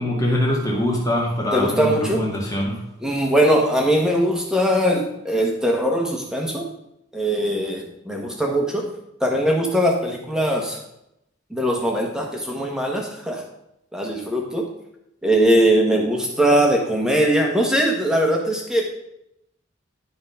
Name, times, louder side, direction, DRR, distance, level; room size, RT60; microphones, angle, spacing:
voice 1, 0.0-2.8, left 1 dB, 15° left, -2 dB, 1.8 m, -23 dB
voice 2, 1.5-2.3 3.0-6.7 7.1-8.9 9.2-10.8 11.5-13.4 13.9-14.6 15.2-18.9, equal, 5° right, 0 dB, 1.3 m, -20 dB
11.5 x 4.0 x 5.6 m, 0.82 s
head